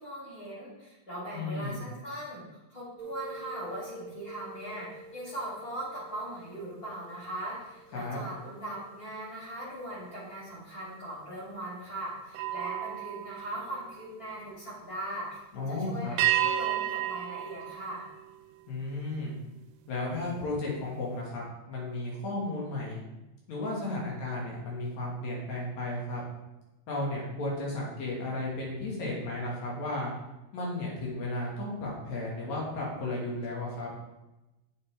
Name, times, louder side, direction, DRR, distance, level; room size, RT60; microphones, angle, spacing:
voice 1, 0.0-15.4 15.7-18.0, right 1 dB, 30° left, -7 dB, 3.1 m, -40 dB
voice 2, 1.3-1.8 7.9-8.2 15.5-16.1 18.7-19.4 19.9-21.4 21.7-23.0 23.5-26.2 26.9-30.1 30.5-33.9, left 2 dB, 75° left, -4 dB, 3.0 m, -34 dB
sound 1, 3.0-8.6 9.0-9.3 12.3-14.5 16.2-18.8, right 12 dB, 80° right, 1.6 m, -35 dB
8.6 x 6.7 x 3.3 m, 1.0 s
omnidirectional pair, 3.3 m